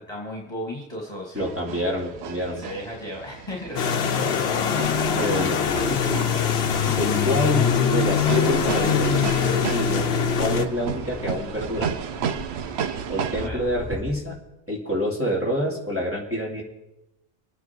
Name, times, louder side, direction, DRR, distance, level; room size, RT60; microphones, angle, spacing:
voice 1, 0.1-1.5 2.6-4.4 5.8-6.5 13.4-13.6, left 1 dB, 25° left, -3 dB, 2.2 m, -35 dB
voice 2, 1.3-2.6 5.1-5.6 6.9-11.9 13.1-14.3 14.7-16.6, equal, 10° right, -3 dB, 2.7 m, -27 dB
sound 1, 1.4-13.5, right 8 dB, 85° right, 1.0 m, -34 dB
sound 2, 3.8-10.7, left 7 dB, 80° left, 1.1 m, -22 dB
sound 3, 4.8-14.0, left 1 dB, 45° right, 2.8 m, -40 dB
27.0 x 9.3 x 4.5 m, 1.0 s
omnidirectional pair, 1.1 m